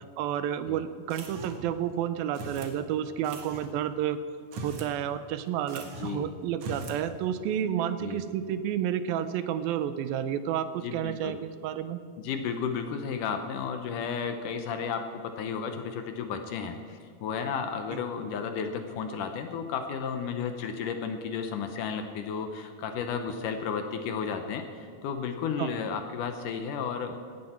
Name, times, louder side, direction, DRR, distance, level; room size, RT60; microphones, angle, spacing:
voice 1, 0.2-4.2 4.6-12.0 25.6-25.7, right 10 dB, 80° right, 12 dB, 2.4 m, -30 dB
sound 1, 1.1-1.7 2.3-2.7 3.2-3.7 4.4-4.9 5.2-5.3 5.7-6.2 6.5-7.0, right 2 dB, 55° right, 1.9 m, -40 dB
voice 2, 6.0-6.3 8.0-8.2 10.8-11.4 12.2-27.2, left 6 dB, 70° left, 6 dB, 2.2 m, -33 dB
17.5 x 13.0 x 4.4 m, 2.3 s
omnidirectional pair, 4.3 m